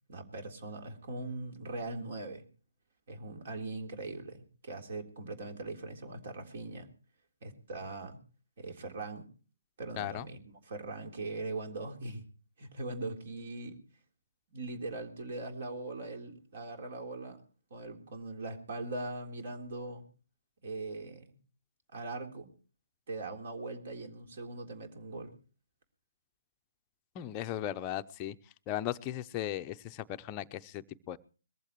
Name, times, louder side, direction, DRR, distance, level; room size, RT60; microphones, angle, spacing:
voice 1, 0.1-2.4 3.1-6.9 7.4-8.2 8.6-9.3 9.8-12.2 12.6-13.8 14.5-17.4 17.7-20.0 20.6-21.3 21.9-22.5 23.1-25.3, right 2 dB, 50° right, 4 dB, 3.7 m, -41 dB
voice 2, 10.0-10.3 27.2-28.3 28.7-31.2, left 12 dB, 25° left, 8 dB, 0.7 m, -37 dB
22.0 x 15.0 x 3.1 m, 0.38 s
figure-of-eight pair, 140°, 0 cm